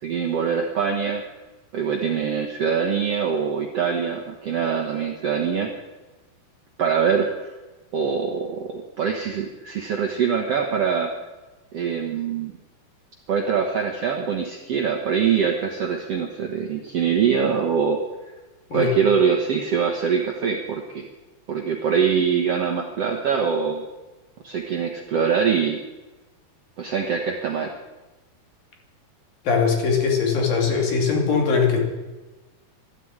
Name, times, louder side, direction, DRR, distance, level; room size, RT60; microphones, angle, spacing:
voice 1, 0.0-1.2 1.7-5.7 6.8-7.5 7.9-11.1 11.7-12.5 13.3-18.0 18.3-18.4 18.7-21.1 21.5-23.8 24.4-25.8 26.8-27.7, right 6 dB, 60° right, 1 dB, 1.6 m, -23 dB
voice 2, 29.5-31.8, left 5 dB, 65° left, 1 dB, 4.4 m, -21 dB
13.0 x 12.5 x 8.8 m, 1.1 s
omnidirectional pair, 4.4 m